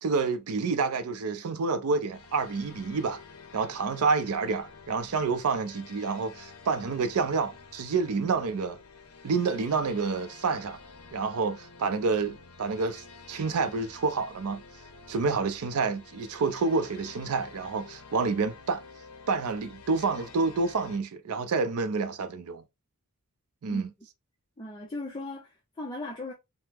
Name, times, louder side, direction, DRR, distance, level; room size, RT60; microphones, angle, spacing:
voice 1, 0.0-3.2 3.5-8.8 9.2-10.8 11.1-14.6 15.1-18.8 19.3-22.6 23.6-23.9, right 4 dB, 80° right, 0.5 m, -28 dB
sound 1, 2.1-21.0, left 4 dB, 70° left, 0.6 m, -50 dB
voice 2, 24.6-26.3, left 2 dB, 20° left, 0.5 m, -38 dB
3.4 x 2.0 x 2.8 m
head